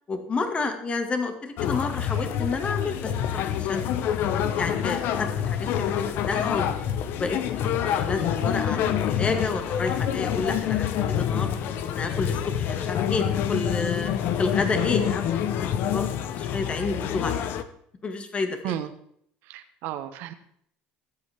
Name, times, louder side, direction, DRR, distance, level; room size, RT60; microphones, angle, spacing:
voice 1, 0.1-3.8 4.6-5.7 6.3-6.8 7.1-10.9 11.2-11.5 11.9-14.1 14.4-15.2 15.9-17.4 18.0-18.7, left 4 dB, 30° left, 6 dB, 2.1 m, -30 dB
sound 1, 1.6-17.6, left 9 dB, 65° left, 1.1 m, -27 dB
voice 2, 19.4-20.3, right 12 dB, 70° right, 9 dB, 1.3 m, -33 dB
21.0 x 8.3 x 3.6 m, 0.66 s
supercardioid pair, 90°, 4 cm